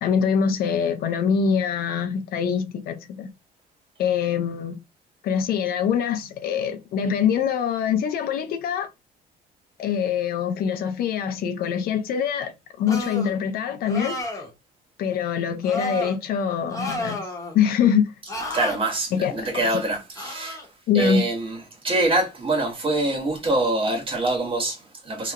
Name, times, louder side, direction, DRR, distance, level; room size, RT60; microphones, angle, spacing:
voice 1, 0.0-3.3 4.0-4.8 5.2-8.9 9.8-14.2 15.0-17.2 17.5-18.1 19.1-19.6 20.9-21.2, left 7 dB, 65° left, 0.5 m, -24 dB
sound 1, 12.9-13.4 13.9-14.5 15.6-16.2 16.7-17.6 18.3-18.8 20.2-20.6, left 1 dB, 20° left, 0.8 m, -31 dB
voice 2, 18.5-20.6 20.9-21.6 21.8-25.3, right 2 dB, 30° right, 0.9 m, -24 dB
2.8 x 2.0 x 2.4 m
cardioid pair, 110°, 17 cm